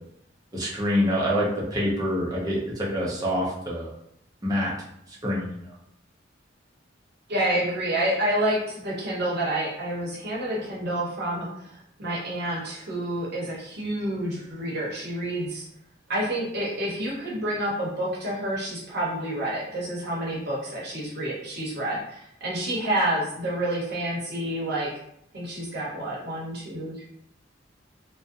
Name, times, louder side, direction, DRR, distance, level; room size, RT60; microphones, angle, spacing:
voice 1, 0.5-3.9 4.4-4.7 5.2-5.6, equal, 20° right, -5 dB, 0.7 m, -26 dB
voice 2, 7.3-11.7 12.0-15.7 16.1-24.9 25.3-27.0, right 1 dB, 60° right, -5 dB, 0.9 m, -28 dB
2.5 x 2.1 x 2.5 m, 0.73 s
head